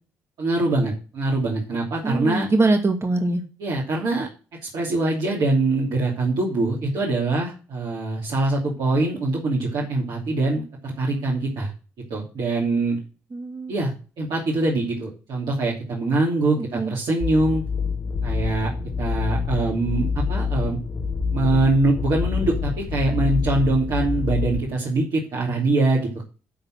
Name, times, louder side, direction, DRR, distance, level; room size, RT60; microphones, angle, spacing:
voice 1, 0.4-2.5 3.6-4.3 4.6-11.7 12.1-13.0 13.7-17.6 18.2-18.7 19.0-20.8 21.3-26.2, right 2 dB, 65° right, -4 dB, 3.0 m, -23 dB
voice 2, 2.0-3.4 13.3-13.7 16.6-16.9, right 2 dB, 35° right, 5 dB, 2.4 m, -22 dB
sound 1, 17.2-24.6, left 5 dB, 50° left, 1.9 m, -26 dB
11.5 x 4.1 x 6.4 m, 0.35 s
hypercardioid pair, 50°, 8 cm